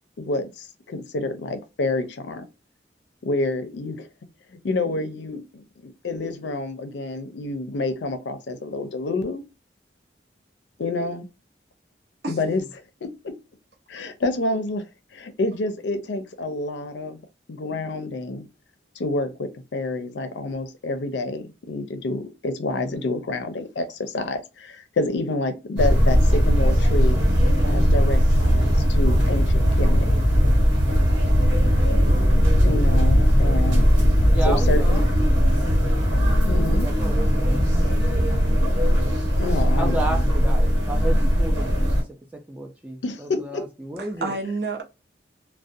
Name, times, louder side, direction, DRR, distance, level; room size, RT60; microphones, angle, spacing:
voice 1, 0.2-2.5 3.2-4.1 4.6-9.4 10.8-11.3 12.3-12.6 13.0-13.4 13.9-14.8 15.1-17.2 17.5-18.5 19.0-27.2 27.6-30.1 32.6-33.9 34.5-35.0 36.5-36.9 39.4-40.2 43.0-43.6, left 2 dB, 80° left, 0.5 m, -28 dB
voice 2, 22.7-23.2 31.8-33.5 34.3-35.4 36.8-37.7 39.8-42.0 42.3-44.3, right 1 dB, 10° right, 0.3 m, -33 dB
sound 1, 25.8-42.0, equal, 85° right, 1.0 m, -19 dB
voice 3, 44.0-44.8, right 3 dB, 60° right, 0.6 m, -31 dB
2.4 x 2.1 x 2.6 m
head